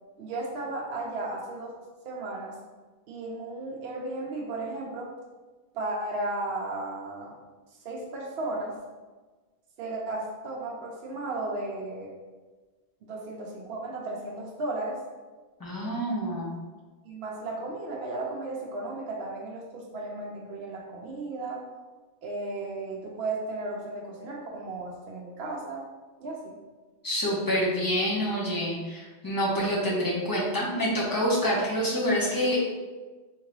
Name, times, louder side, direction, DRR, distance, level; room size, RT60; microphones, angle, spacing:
voice 1, 0.2-1.7 2.0-2.6 3.1-5.1 5.7-7.4 7.8-8.8 9.8-12.1 13.0-15.0 17.0-21.6 22.2-25.8 26.2-26.6, right 2 dB, 70° right, -2 dB, 0.8 m, -34 dB
voice 2, 15.6-16.5 27.0-32.7, equal, 20° left, -6 dB, 0.8 m, -27 dB
3.6 x 2.9 x 3.0 m, 1.3 s
omnidirectional pair, 1.1 m